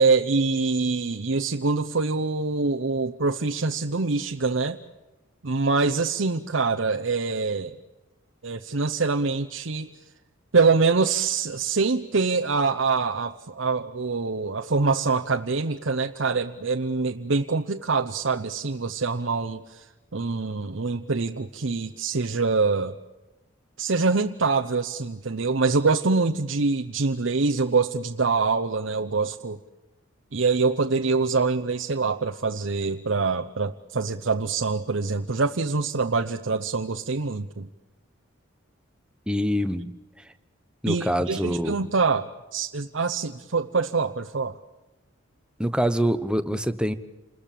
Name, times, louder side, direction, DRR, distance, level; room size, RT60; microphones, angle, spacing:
voice 1, 0.0-4.8 5.4-7.8 8.4-9.9 10.5-19.9 20.1-23.0 23.8-29.6 30.3-37.7 40.9-44.6, right 4 dB, 65° right, 4 dB, 0.8 m, -25 dB
voice 2, 39.3-39.9 40.8-41.8 45.6-46.9, equal, 5° right, 9 dB, 1.0 m, -25 dB
28.0 x 21.0 x 7.5 m, 1.1 s
head